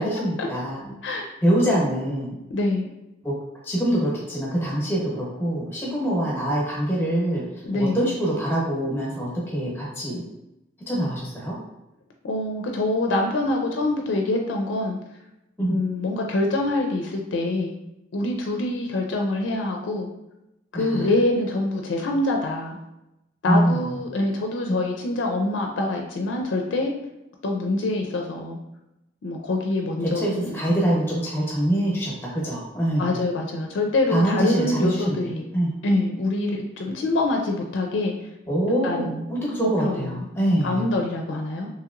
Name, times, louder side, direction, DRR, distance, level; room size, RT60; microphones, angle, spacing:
voice 1, 0.0-0.9 1.4-2.4 3.2-3.3 3.6-7.4 7.7-10.2 10.9-11.6 15.6-15.8 20.7-21.1 23.5-24.0 24.7-24.8 30.0-33.1 34.1-35.2 35.5-35.7 38.5-40.9, right 1 dB, 10° left, -5 dB, 0.8 m, -24 dB
voice 2, 2.5-2.9 7.6-8.1 12.2-15.0 15.7-17.7 18.1-20.1 20.7-22.8 23.4-26.9 27.4-28.6 29.2-30.6 33.0-35.5 35.8-38.1 38.8-39.2 39.8-40.2 40.6-41.7, left 2 dB, 85° left, 2 dB, 0.4 m, -25 dB
2.9 x 2.9 x 2.4 m, 0.88 s
head